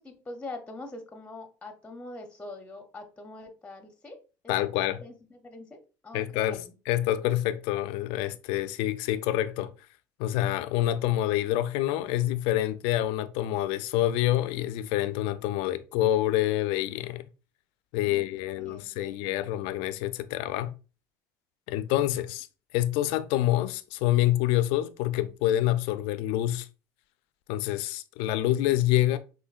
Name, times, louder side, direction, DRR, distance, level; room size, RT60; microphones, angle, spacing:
voice 1, 0.0-6.7 18.0-18.2 18.6-19.4, left 2 dB, 10° left, 0.6 m, -44 dB
voice 2, 4.5-5.0 6.1-9.7 10.2-17.2 17.9-20.7 21.7-22.5 22.7-26.7 27.5-29.2, left 14 dB, 70° left, 0.3 m, -27 dB
5.0 x 2.2 x 2.3 m
hypercardioid pair, 80°, 10 cm